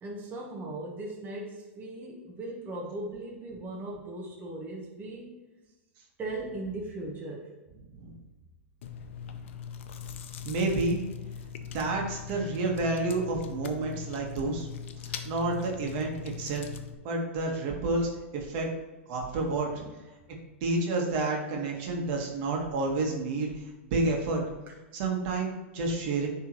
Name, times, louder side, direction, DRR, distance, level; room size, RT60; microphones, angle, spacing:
voice 1, 0.0-5.3 6.2-7.5 19.7-19.9, right 2 dB, 25° right, -3 dB, 1.3 m, -38 dB
Chewing mastication, 8.8-17.0, left 7 dB, 70° left, 0.7 m, -41 dB
voice 2, 10.4-11.0 11.7-14.7 15.0-16.7 17.0-18.7 19.1-19.7 20.6-24.4 24.9-26.3, right 2 dB, 55° right, 0 dB, 1.6 m, -29 dB
10.0 x 3.6 x 3.1 m, 1.1 s
hypercardioid pair, 110°, 7 cm